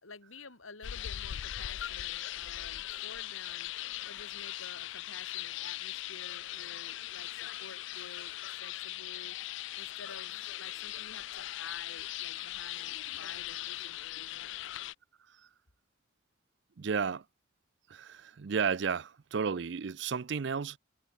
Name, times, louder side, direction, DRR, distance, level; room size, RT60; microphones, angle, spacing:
voice 1, 0.0-3.7 4.0-9.4 9.7-14.5, left 4 dB, 90° left, 3.2 m, -51 dB
sound 1, 0.8-14.9, left 14 dB, 65° left, 0.4 m, -40 dB
voice 2, 16.8-17.2 17.9-20.8, right 6 dB, 60° right, 0.5 m, -33 dB
head